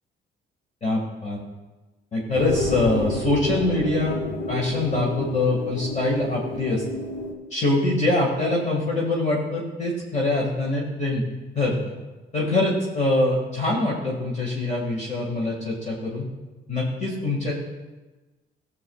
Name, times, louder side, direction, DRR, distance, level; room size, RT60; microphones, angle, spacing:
voice 1, 0.8-1.4 2.1-4.2 4.5-6.8 7.5-11.2 11.6-11.9 12.3-16.3 16.7-17.5, left 2 dB, 35° left, -3 dB, 1.9 m, -24 dB
sound 1, 2.3-7.3, left 2 dB, 70° left, 1.3 m, -30 dB
15.0 x 7.1 x 2.3 m, 1.2 s
cardioid pair, 90°, 20 cm